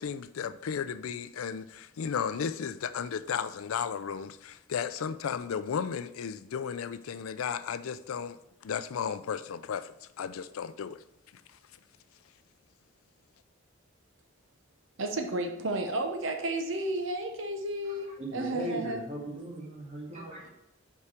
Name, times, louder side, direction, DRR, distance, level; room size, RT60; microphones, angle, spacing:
voice 1, 0.0-8.4 8.6-11.0, left 7 dB, 85° left, 0.4 m, -34 dB
voice 2, 15.0-19.0, right 1 dB, 65° right, 0.8 m, -32 dB
voice 3, 18.2-20.5, right 1 dB, 30° right, 2.0 m, -38 dB
5.6 x 4.7 x 5.0 m
head